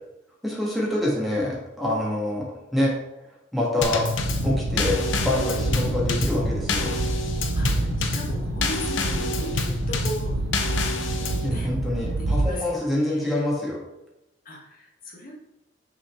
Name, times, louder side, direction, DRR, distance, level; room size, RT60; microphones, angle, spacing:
voice 1, 0.4-2.4 2.7-2.9 3.5-4.1 4.4-6.9 11.4-13.8, left 1 dB, ahead, -5 dB, 1.6 m, -26 dB
Drum kit / Snare drum / Bass drum, 3.8-11.5, left 3 dB, 75° left, 0.7 m, -28 dB
sound 1, 4.2-12.5, right 2 dB, 80° right, 0.6 m, -28 dB
voice 2, 7.5-10.5 11.4-11.7 12.2-13.5 14.4-15.3, equal, 50° left, -2 dB, 1.4 m, -38 dB
6.2 x 4.2 x 4.4 m, 0.89 s
head